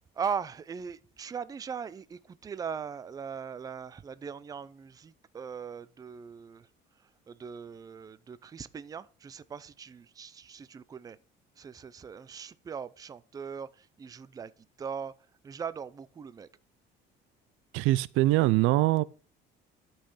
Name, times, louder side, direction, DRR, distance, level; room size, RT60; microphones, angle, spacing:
voice 1, 0.2-6.7 7.3-11.2 11.6-14.5 14.8-15.1 15.4-16.5, right 6 dB, 20° right, 0.4 m, -39 dB
voice 2, 17.7-19.0, right 18 dB, 85° right, 0.5 m, -23 dB
11.5 x 5.6 x 5.5 m
cardioid pair, 150°, 20 cm